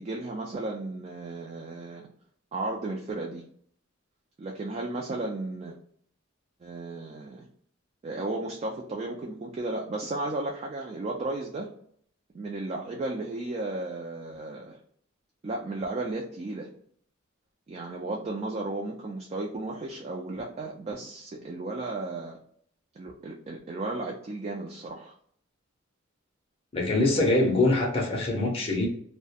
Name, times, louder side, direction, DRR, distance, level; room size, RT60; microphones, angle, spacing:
voice 1, 0.0-2.0 2.5-3.4 4.4-5.8 6.6-7.5 8.0-11.7 12.3-14.8 15.4-16.7 17.7-22.4 23.0-25.1, right 2 dB, 30° right, -1 dB, 0.3 m, -34 dB
voice 2, 26.7-28.9, left 2 dB, 30° left, 0 dB, 0.6 m, -24 dB
2.3 x 2.1 x 2.7 m, 0.62 s
head